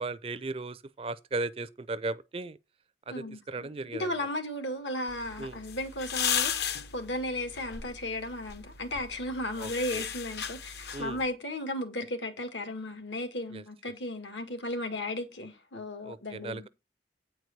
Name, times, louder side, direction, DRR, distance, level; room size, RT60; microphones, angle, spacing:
voice 1, 0.0-2.6 3.1-4.3 5.4-5.6 9.6-10.0 10.9-11.2 13.5-13.6 16.0-16.7, right 3 dB, 30° right, 0.5 m, -36 dB
voice 2, 3.1-16.6, left 1 dB, 85° left, 1.9 m, -35 dB
sound 1, 5.1-11.3, left 8 dB, 60° left, 0.8 m, -36 dB
8.9 x 4.6 x 6.6 m
head